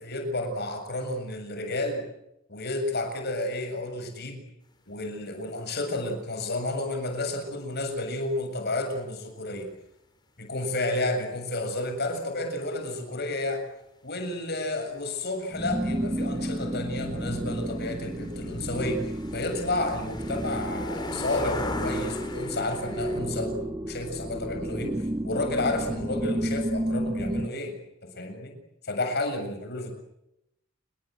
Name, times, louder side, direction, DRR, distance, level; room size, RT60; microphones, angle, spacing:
voice 1, 0.0-2.1 2.5-4.4 4.9-9.7 10.4-13.6 14.0-25.0 25.2-27.7 28.0-28.6 28.8-29.9, left 2 dB, 55° left, 6 dB, 7.5 m, -31 dB
sound 1, 15.2-15.3 15.5-23.2, left 2 dB, 20° left, 5.1 m, -38 dB
sound 2, 15.5-27.5, right 1 dB, 15° right, 0.9 m, -32 dB
29.0 x 23.0 x 7.9 m, 0.83 s
head